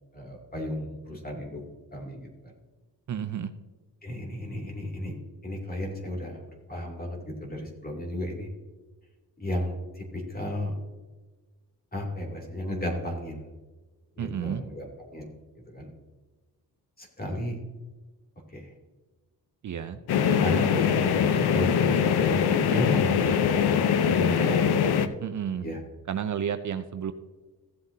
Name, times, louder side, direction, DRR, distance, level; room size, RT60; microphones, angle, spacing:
voice 1, 0.1-1.6 1.9-2.5 4.0-5.1 5.4-6.4 6.7-8.5 9.4-10.7 11.9-13.5 14.2-15.3 15.5-15.9 17.0-17.6 18.5-18.7 20.4-24.7 25.6-25.8, left 1 dB, 20° left, 1 dB, 2.9 m, -34 dB
voice 2, 3.1-3.5 14.2-14.6 19.6-20.0 25.2-25.7 26.1-27.1, right 8 dB, 50° right, 9 dB, 0.6 m, -31 dB
sound 1, 20.1-25.1, left 7 dB, 70° left, 0.8 m, -23 dB
15.5 x 7.7 x 2.8 m, 1.3 s
cardioid pair, 95°, 40 cm